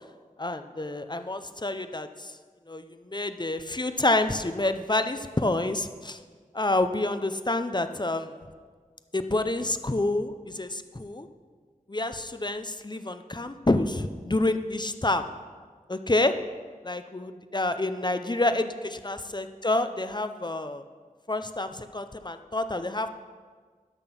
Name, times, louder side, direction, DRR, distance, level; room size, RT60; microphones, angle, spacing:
voice 1, 0.4-2.3 2.7-6.2 6.5-8.3 9.1-11.3 11.9-15.2 15.9-16.3 16.8-20.8 21.3-23.1, left 2 dB, 30° left, 9 dB, 0.6 m, -28 dB
12.5 x 6.0 x 5.9 m, 1.6 s
wide cardioid pair, 40°, 14 cm